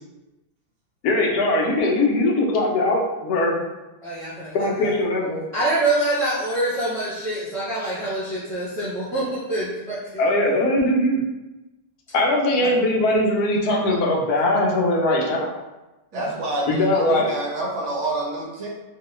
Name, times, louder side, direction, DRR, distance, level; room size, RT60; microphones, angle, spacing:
voice 1, 1.0-3.6 4.5-5.4 10.2-11.2 12.1-15.5 16.7-17.3, left 1 dB, 70° left, -1 dB, 1.0 m, -20 dB
voice 2, 4.0-4.9 5.5-10.3 12.5-12.8 16.1-16.2, right 2 dB, 30° right, -12 dB, 0.6 m, -26 dB
voice 3, 16.1-18.7, right 2 dB, 65° right, -3 dB, 0.7 m, -27 dB
3.0 x 2.3 x 3.0 m, 1.0 s
omnidirectional pair, 1.9 m